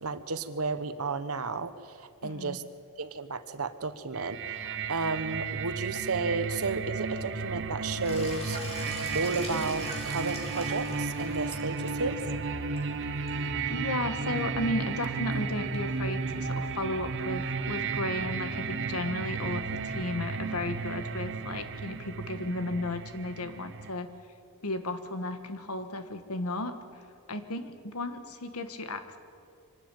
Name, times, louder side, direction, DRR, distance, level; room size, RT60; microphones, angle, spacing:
voice 1, 0.0-2.6 3.0-8.6 9.1-12.2, right 3 dB, 75° right, 12 dB, 1.1 m, -33 dB
voice 2, 2.2-2.6 13.7-24.1 24.6-26.7 27.3-29.2, left 1 dB, 90° left, 9 dB, 1.7 m, -34 dB
sound 1, 4.1-23.9, right 4 dB, 60° right, 1.0 m, -34 dB
Sink (filling or washing), 7.9-15.8, left 1 dB, 30° left, 3.4 m, -44 dB
25.0 x 12.5 x 9.3 m, 2.4 s
head